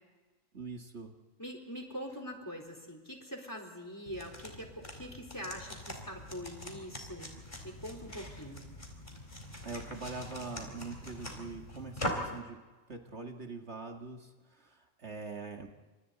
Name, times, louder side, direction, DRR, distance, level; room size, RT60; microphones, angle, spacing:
voice 1, 0.5-1.1 9.6-12.6 12.9-15.7, right 4 dB, 60° right, 2 dB, 2.2 m, -43 dB
voice 2, 1.4-7.3 7.6-8.7, equal, 15° left, 3 dB, 4.1 m, -43 dB
sound 1, 4.1-12.4, left 1 dB, 35° left, 4.6 m, -42 dB
30.0 x 27.5 x 4.1 m, 1.2 s
omnidirectional pair, 1.3 m